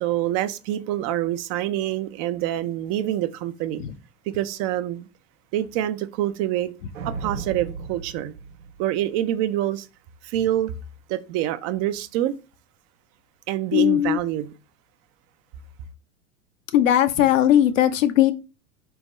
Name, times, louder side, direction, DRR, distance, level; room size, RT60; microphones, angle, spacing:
voice 1, 0.0-3.8 4.3-5.1 5.5-6.7 7.0-8.3 8.8-9.9 10.2-10.7 11.1-12.3 13.5-14.5, right 13 dB, 40° right, 0.4 m, -26 dB
sound 1, 6.9-9.4, right 5 dB, 80° right, 0.8 m, -36 dB
voice 2, 13.7-14.2 16.7-18.3, left 11 dB, 75° left, 0.6 m, -18 dB
4.2 x 3.4 x 3.1 m
hypercardioid pair, 85°, 38 cm